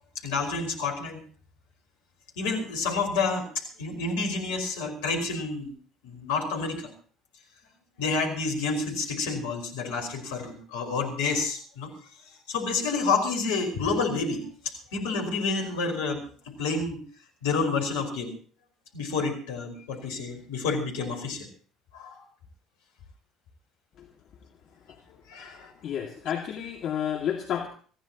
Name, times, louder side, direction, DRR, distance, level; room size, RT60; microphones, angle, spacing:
voice 1, 0.2-1.2 2.4-3.5 3.8-5.7 6.0-6.9 8.0-11.9 12.5-16.2 16.6-17.0 17.4-18.3 18.9-21.5 21.9-22.2 25.3-25.7, left 4 dB, 70° left, 3 dB, 5.1 m, -29 dB
voice 2, 25.8-27.7, left 9 dB, 55° left, 2 dB, 2.1 m, -30 dB
25.5 x 15.5 x 3.0 m, 0.42 s
figure-of-eight pair, 55°, 0 cm